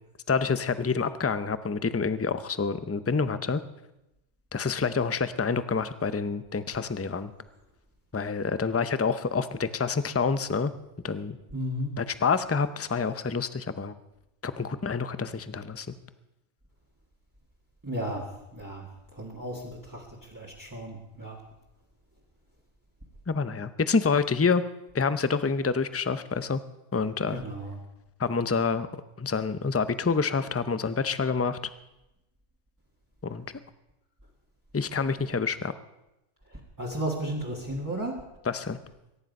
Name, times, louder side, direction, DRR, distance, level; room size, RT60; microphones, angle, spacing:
voice 1, 0.3-3.6 4.5-7.3 8.1-10.7 11.0-11.4 12.0-13.9 14.4-15.9 23.3-24.6 24.9-26.6 26.9-27.4 28.2-28.9 29.2-31.6 33.2-33.4 34.7-35.7 38.5-38.8, left 5 dB, 20° left, 13 dB, 0.4 m, -27 dB
voice 2, 11.5-11.9 17.8-18.3 18.5-18.9 19.1-21.4 27.3-27.8 36.5-38.2, right 1 dB, 15° right, -4 dB, 1.9 m, -34 dB
22.5 x 10.5 x 5.3 m, 0.93 s
omnidirectional pair, 1.2 m